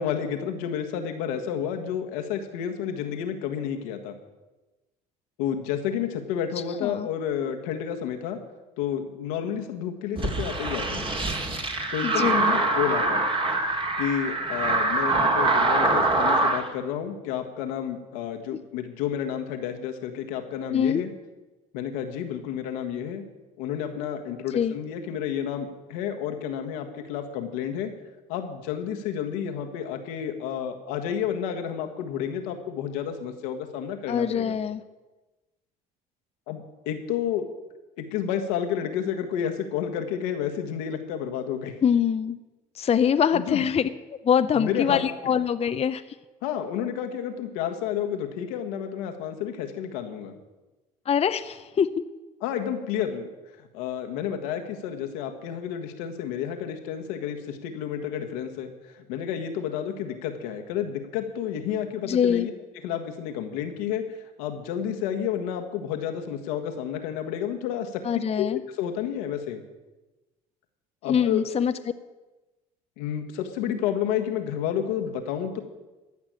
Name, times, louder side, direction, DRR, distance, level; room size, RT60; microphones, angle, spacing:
voice 1, 0.0-4.1 5.4-8.4 8.8-11.0 11.9-13.2 14.0-21.1 21.7-23.2 23.6-27.9 28.3-34.6 36.5-37.5 38.0-41.7 43.3-43.6 44.5-45.0 46.4-50.3 52.4-53.3 53.7-58.7 59.1-62.5 62.8-64.0 64.4-68.0 68.4-69.6 71.0-71.4 73.0-75.6, left 9 dB, 80° left, 5 dB, 1.5 m, -30 dB
sound 1, 10.2-16.6, right 2 dB, 30° right, 2.4 m, -24 dB
voice 2, 12.0-12.5 20.7-21.0 24.5-24.8 34.1-34.8 41.8-42.4 42.8-43.9 44.2-46.0 51.1-51.9 62.1-62.5 68.0-68.6 71.1-71.7, left 8 dB, 35° left, 10 dB, 0.7 m, -24 dB
14.0 x 6.0 x 8.9 m, 1.1 s
hypercardioid pair, 65°, 18 cm